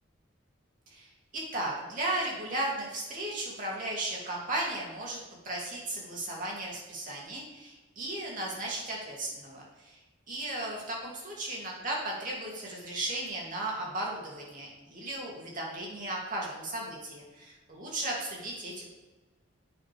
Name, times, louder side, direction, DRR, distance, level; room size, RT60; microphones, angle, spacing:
voice 1, 0.9-5.2 5.4-10.0 10.3-18.9, right 1 dB, 40° right, -3 dB, 2.8 m, -35 dB
9.9 x 8.3 x 3.5 m, 1.1 s
head